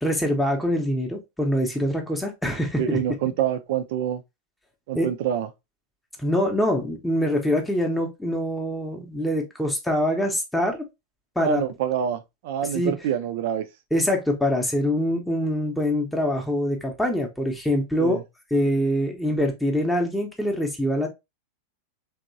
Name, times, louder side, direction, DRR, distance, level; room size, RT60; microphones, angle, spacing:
voice 1, 0.0-3.0 4.9-5.1 6.2-10.8 11.4-11.6 12.7-13.0 13.9-18.2 18.5-21.1, equal, 5° left, 0.8 m, -24 dB
voice 2, 2.8-4.2 4.9-5.5 11.4-13.7 18.0-18.2, right 9 dB, 50° right, 0.5 m, -26 dB
3.5 x 3.0 x 2.6 m
figure-of-eight pair, 90°, 0 cm